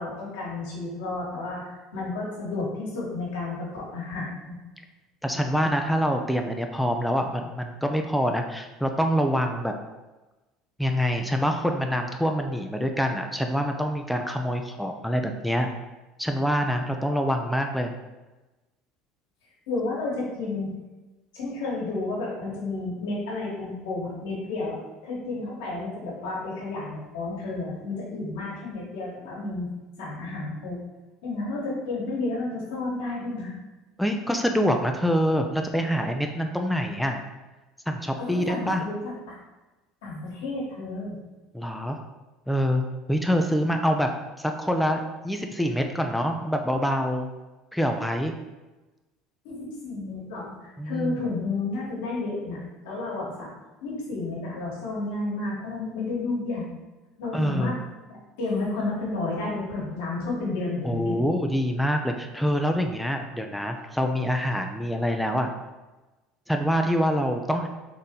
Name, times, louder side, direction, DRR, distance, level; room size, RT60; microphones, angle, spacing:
voice 1, 0.0-4.6 19.7-20.7 21.3-24.8 25.0-29.7 30.0-30.8 31.2-33.5 38.2-39.3 40.0-41.2 49.4-53.5 53.8-56.7 57.2-57.7 58.1-61.3, left 3 dB, 85° left, -4 dB, 1.4 m, -31 dB
voice 2, 5.2-9.7 10.8-15.7 16.2-17.9 34.0-37.2 37.9-38.8 41.5-42.0 42.5-42.8 43.1-44.1 44.4-47.3 47.7-48.3 50.8-51.2 57.3-57.7 60.8-65.5 66.5-67.7, equal, ahead, 4 dB, 0.4 m, -25 dB
4.0 x 2.7 x 3.7 m, 1.1 s
supercardioid pair, 95°, 0 cm